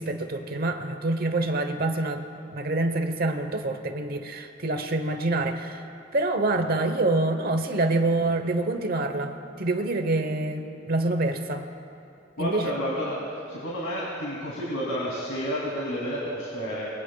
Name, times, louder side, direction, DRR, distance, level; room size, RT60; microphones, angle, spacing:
voice 1, 0.0-2.2 2.5-5.8 6.1-11.7 12.4-12.7, right 2 dB, 50° right, 7 dB, 1.0 m, -26 dB
voice 2, 12.4-16.9, equal, 85° left, -6 dB, 2.9 m, -30 dB
24.5 x 20.5 x 2.3 m, 2.6 s
head